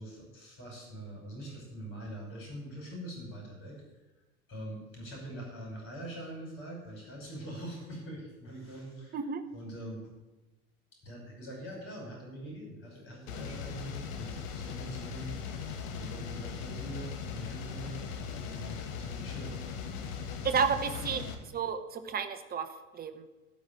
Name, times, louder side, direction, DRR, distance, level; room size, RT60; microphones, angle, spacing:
voice 1, 0.0-3.8 4.5-9.2 9.5-10.0 11.0-19.6 20.0-20.4 20.9-21.0, right 1 dB, 25° left, -2 dB, 5.2 m, -44 dB
sound 1, 13.3-21.3, left 6 dB, 45° left, 1.9 m, -39 dB
voice 2, 20.4-21.2 21.5-23.3, right 6 dB, 20° right, 8 dB, 1.2 m, -31 dB
13.0 x 5.5 x 9.3 m, 1.1 s
figure-of-eight pair, 80°, 43 cm